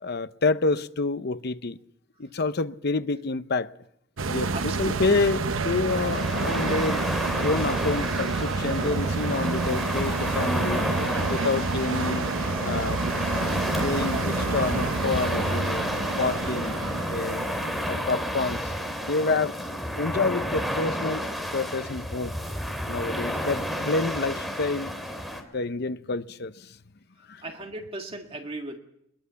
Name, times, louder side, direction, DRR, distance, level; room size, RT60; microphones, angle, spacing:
voice 1, 0.0-1.8 2.2-3.7 4.3-10.8 11.3-13.0 13.8-15.9 16.1-16.8 17.1-17.5 17.9-18.7 19.1-19.6 20.0-21.3 21.5-22.4 22.9-24.9 25.5-26.8 27.3-27.4, left 3 dB, 55° left, 0.8 m, -28 dB
sound 1, 4.2-18.8 19.2-19.3, right 3 dB, 85° right, 0.9 m, -29 dB
voice 2, 4.5-5.0 27.4-28.8, right 2 dB, 30° right, 1.9 m, -37 dB
sound 2, 5.9-25.4, equal, ahead, 3.2 m, -31 dB
22.5 x 21.5 x 7.0 m
head